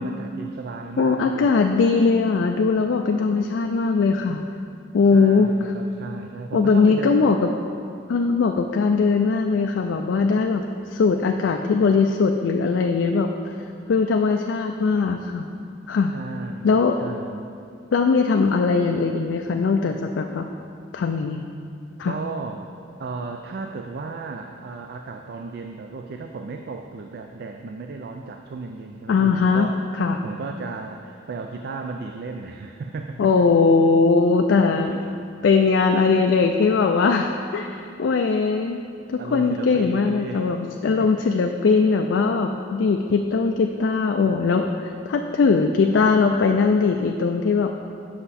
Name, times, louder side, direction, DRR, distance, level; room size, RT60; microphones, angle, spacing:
voice 1, 0.0-1.5 5.1-7.4 16.1-17.5 22.1-22.7 23.0-29.8 30.2-33.5 34.7-35.0 39.2-41.1, right 4 dB, 60° right, 4 dB, 0.4 m, -35 dB
voice 2, 1.0-4.4 4.9-5.7 6.5-7.4 8.1-13.5 13.9-15.5 15.9-16.1 16.6-16.9 17.9-20.5 20.9-21.4 22.0-22.1 29.1-29.7 30.0-30.2 33.2-34.9 35.4-38.8 39.1-47.7, left 4 dB, 75° left, 4 dB, 0.4 m, -20 dB
7.6 x 5.8 x 4.1 m, 2.4 s
head